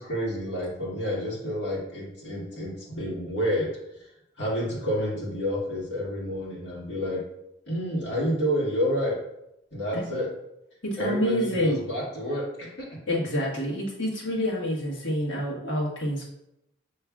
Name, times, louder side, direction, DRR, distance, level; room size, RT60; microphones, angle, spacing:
voice 1, 0.0-3.7 4.4-7.2 7.7-9.2 9.7-10.3 11.0-13.0, equal, 70° left, -5 dB, 1.7 m, -29 dB
voice 2, 10.8-11.8 13.1-16.3, equal, 85° left, -4 dB, 1.4 m, -27 dB
7.0 x 3.0 x 2.3 m, 0.84 s
head